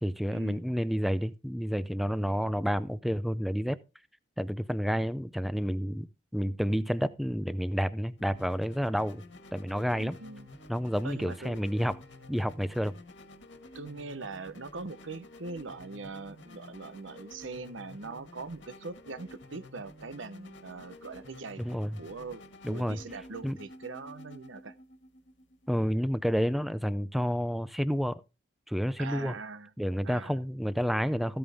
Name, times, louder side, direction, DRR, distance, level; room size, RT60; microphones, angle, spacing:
voice 1, 0.0-3.8 4.4-6.1 6.3-9.2 9.5-10.2 10.7-12.0 12.3-12.9 21.6-22.0 22.6-23.0 23.4-23.6 25.7-28.2 28.7-29.3 29.8-31.4, equal, ahead, 0.5 m, -30 dB
sound 1, 8.2-25.9, left 1 dB, 70° left, 2.0 m, -51 dB
voice 2, 9.9-10.5 11.0-11.6 13.7-24.7 29.0-29.7 30.0-30.4, right 3 dB, 80° right, 0.9 m, -42 dB
15.0 x 8.8 x 3.5 m
head